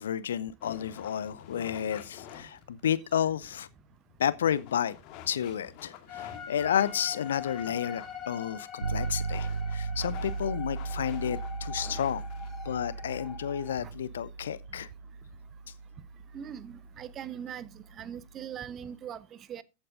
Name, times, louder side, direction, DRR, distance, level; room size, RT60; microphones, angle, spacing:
voice 1, 0.0-3.7 4.2-5.0 5.3-12.2 12.6-14.9, left 9 dB, 65° left, 0.6 m, -31 dB
sound 1, 0.6-12.6, left 9 dB, 40° left, 2.0 m, -50 dB
sound 2, 6.1-13.8, left 7 dB, 15° left, 4.1 m, -44 dB
sound 3, 8.8-18.7, right 4 dB, 75° right, 0.5 m, -37 dB
voice 2, 16.3-19.6, right 9 dB, 30° right, 0.8 m, -41 dB
14.5 x 8.8 x 2.5 m
figure-of-eight pair, 90°, 0 cm